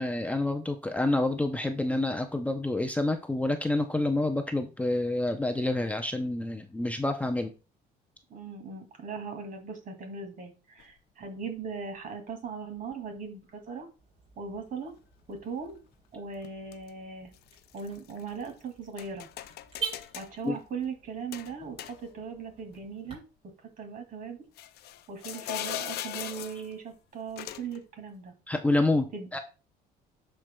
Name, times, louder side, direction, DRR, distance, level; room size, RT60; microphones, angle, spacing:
voice 1, 0.0-7.5 20.4-20.6 28.5-29.4, left 2 dB, 10° left, 5 dB, 0.5 m, -28 dB
voice 2, 8.3-13.9 14.4-14.9 15.3-15.8 16.1-17.3 17.7-19.3 20.2-23.2 23.8-24.4 25.1-28.3 29.1-29.3, right 5 dB, 55° right, 5 dB, 2.3 m, -39 dB
sound 1, 10.8-10.9 11.9-12.0 12.9-13.2 16.4-16.9 17.3-18.5 19.0-20.3 21.3-22.4 22.7-22.8 24.6-26.7 27.4-27.8, left 13 dB, 70° left, 0.5 m, -40 dB
Car / Alarm, 14.0-23.2, right 6 dB, 40° right, 3.7 m, -46 dB
12.5 x 4.5 x 2.2 m, 0.32 s
cardioid pair, 110°, 17 cm